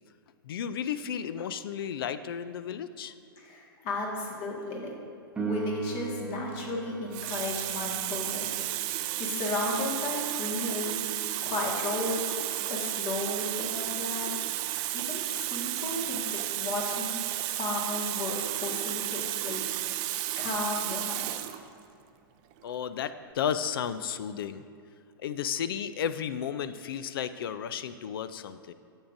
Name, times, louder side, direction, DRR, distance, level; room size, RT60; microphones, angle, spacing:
voice 1, 0.4-3.1 20.3-20.4 22.6-24.6 25.2-28.7, left 8 dB, 70° left, 12 dB, 0.4 m, -33 dB
voice 2, 3.4-4.9 5.4-8.5 9.2-11.0 11.4-12.3 12.7-14.4 14.9-19.7 20.4-21.4, left 2 dB, 40° left, -1 dB, 1.7 m, -34 dB
Piano, 5.4-15.8 23.3-23.4, right 5 dB, 10° right, 0.8 m, -43 dB
Water tap faucet, 6.3-6.5 7.1-21.6 22.5-22.7, right 14 dB, 35° right, 0.4 m, -33 dB
10.5 x 7.2 x 2.6 m, 2.4 s
hypercardioid pair, 120°, 12 cm